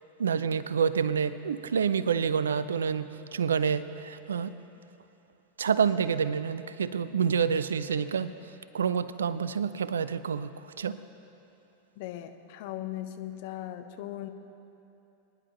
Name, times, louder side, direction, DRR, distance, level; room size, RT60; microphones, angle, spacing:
voice 1, 0.2-4.5 5.6-8.3 8.7-10.5 10.8-11.0, right 7 dB, 70° right, 15 dB, 0.4 m, -28 dB
voice 2, 12.0-14.3, left 13 dB, 50° left, 8 dB, 0.7 m, -38 dB
24.0 x 10.5 x 3.0 m, 2.8 s
figure-of-eight pair, 90°, 0 cm